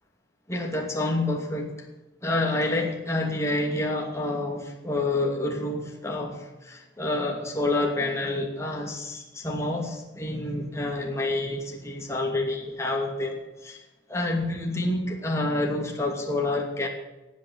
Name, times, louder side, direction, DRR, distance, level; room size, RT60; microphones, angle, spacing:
voice 1, 0.5-1.7 2.2-13.8 14.1-16.9, left 2 dB, 15° left, 0 dB, 2.6 m, -28 dB
18.0 x 8.7 x 8.7 m, 1.0 s
head